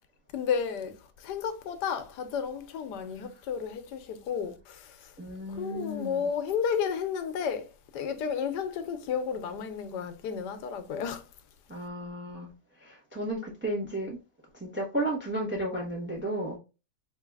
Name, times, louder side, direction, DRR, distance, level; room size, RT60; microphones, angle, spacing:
voice 1, 0.3-5.1 5.5-11.2, left 7 dB, 85° left, 1.2 m, -32 dB
voice 2, 5.2-6.3 11.7-12.5 12.8-14.2 14.6-16.6, right 1 dB, 10° right, 0.7 m, -33 dB
3.9 x 3.1 x 2.3 m
omnidirectional pair, 1.8 m